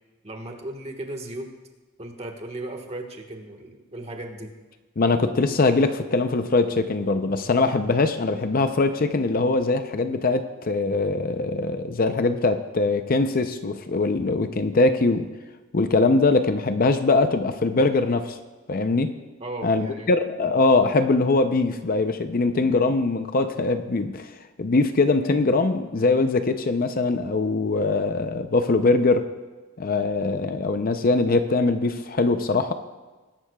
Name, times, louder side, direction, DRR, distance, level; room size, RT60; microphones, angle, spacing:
voice 1, 0.2-1.5 2.0-4.5 19.4-20.1, right 1 dB, 30° right, 3 dB, 1.4 m, -36 dB
voice 2, 5.0-15.3 15.7-18.4 18.7-19.1 19.6-24.3 24.6-29.3 29.8-32.7, left 3 dB, 45° left, 8 dB, 0.6 m, -22 dB
21.0 x 11.5 x 2.3 m, 1.3 s
head